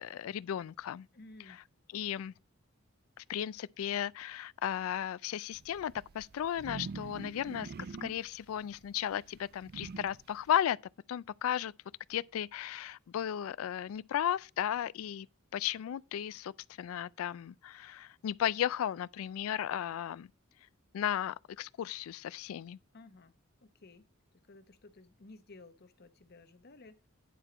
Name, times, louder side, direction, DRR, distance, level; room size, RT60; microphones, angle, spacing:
voice 1, 0.0-1.1 1.9-2.3 3.2-7.7 8.0-10.8 11.1-11.7 12.1-15.3 15.5-16.5 16.8-20.3 20.9-22.8, left 10 dB, 75° left, 0.3 m, -35 dB
voice 2, 1.1-1.6 22.9-23.3 23.6-24.1 24.5-27.0, left 2 dB, 50° left, 0.8 m, -55 dB
sound 1, 5.5-10.6, right 4 dB, 45° right, 0.4 m, -45 dB
10.0 x 4.4 x 4.9 m
head